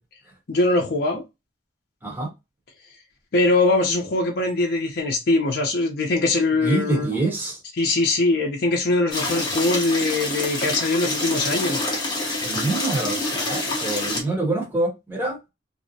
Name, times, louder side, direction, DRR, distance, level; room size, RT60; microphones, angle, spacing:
voice 1, 0.5-1.2 3.3-7.2 7.8-11.8, left 2 dB, 55° left, 0.5 m, -22 dB
voice 2, 6.6-7.6 12.4-15.4, right 2 dB, 10° right, 1.0 m, -26 dB
sound 1, 9.1-14.2, left 2 dB, 25° left, 0.7 m, -26 dB
2.6 x 2.0 x 2.5 m
head